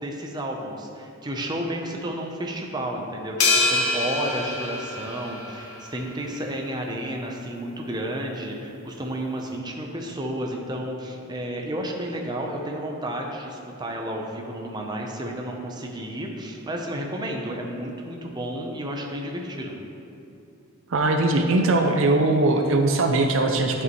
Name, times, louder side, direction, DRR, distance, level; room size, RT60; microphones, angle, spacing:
voice 1, 0.0-19.8, right 1 dB, 20° right, 0 dB, 0.6 m, -32 dB
sound 1, 3.4-5.9, left 3 dB, 80° left, 0.9 m, -25 dB
voice 2, 20.9-23.8, right 2 dB, 60° right, 4 dB, 0.5 m, -20 dB
11.0 x 5.4 x 3.1 m, 2.7 s
head